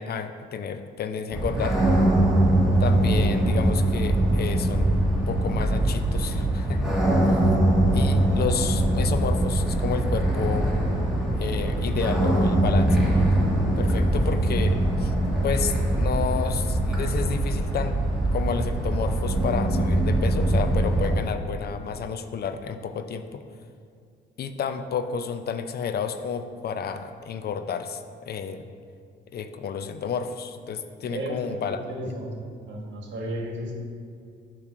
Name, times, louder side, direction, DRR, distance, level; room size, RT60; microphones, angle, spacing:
voice 1, 0.0-1.8 2.8-6.9 7.2-7.5 7.9-10.7 11.4-13.1 13.8-15.1 15.4-18.0 18.3-23.4 24.4-28.7 29.3-31.8, left 6 dB, 55° left, 9 dB, 0.5 m, -31 dB
sound 1, 1.3-21.1, right 1 dB, ahead, 1.5 m, -22 dB
voice 2, 31.0-32.3 32.6-33.7, right 1 dB, 65° right, -1 dB, 1.5 m, -34 dB
8.6 x 3.1 x 5.8 m, 2.3 s
cardioid pair, 90°, 20 cm